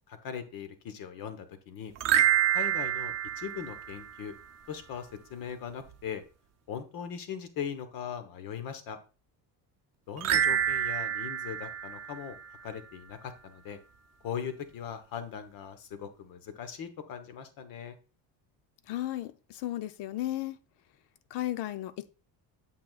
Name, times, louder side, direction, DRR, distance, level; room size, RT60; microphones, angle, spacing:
voice 1, 0.1-1.9 2.5-4.3 4.7-6.2 6.7-9.0 10.1-13.8 14.2-18.0, left 8 dB, 55° left, 1.2 m, -40 dB
sound 1, 2.0-4.4 10.2-12.8, right 11 dB, 40° right, 0.6 m, -28 dB
voice 2, 18.9-20.6 21.3-22.1, left 14 dB, 80° left, 0.8 m, -34 dB
8.6 x 7.4 x 2.4 m
cardioid pair, 170°, 40 cm